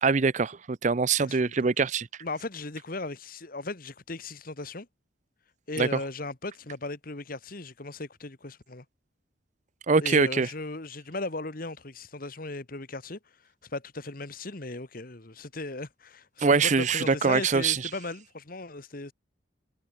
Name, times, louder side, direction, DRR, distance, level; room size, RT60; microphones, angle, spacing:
voice 1, 0.0-2.1 5.8-5.9 9.9-10.5 16.4-17.8, right 4 dB, 40° right, 0.5 m, -23 dB
voice 2, 1.2-1.5 2.2-4.9 5.7-8.8 10.0-13.2 13.6-19.1, left 2 dB, 45° left, 1.5 m, -37 dB
head